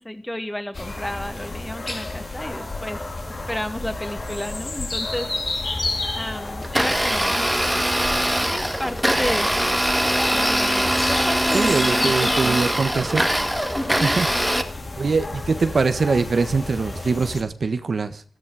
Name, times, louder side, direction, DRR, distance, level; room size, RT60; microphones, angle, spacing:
voice 1, 0.0-3.0 3.5-5.8 6.1-7.5 8.5-9.8 10.3-12.7 13.7-14.2, left 1 dB, 10° left, 9 dB, 2.2 m, -32 dB
sound 1, 0.7-17.4, left 2 dB, 40° left, 3.4 m, -31 dB
Domestic sounds home sounds, 6.6-14.6, right 1 dB, 10° right, 1.8 m, -22 dB
voice 2, 11.5-13.3 14.0-14.3 15.0-18.2, right 4 dB, 60° right, 10 dB, 1.3 m, -23 dB
17.5 x 13.5 x 4.9 m, 0.42 s
wide cardioid pair, 75°, 0 cm